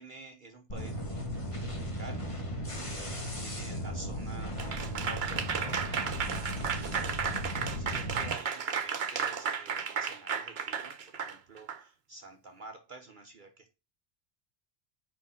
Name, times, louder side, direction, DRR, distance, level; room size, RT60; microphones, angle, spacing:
voice 1, 0.0-13.8, right 3 dB, 50° right, 1.1 m, -50 dB
sound 1, 0.7-8.3, equal, 30° left, 1.4 m, -36 dB
Applause / Crowd, 4.6-11.8, right 6 dB, 65° right, 1.1 m, -34 dB
6.4 x 5.0 x 5.7 m
omnidirectional pair, 1.2 m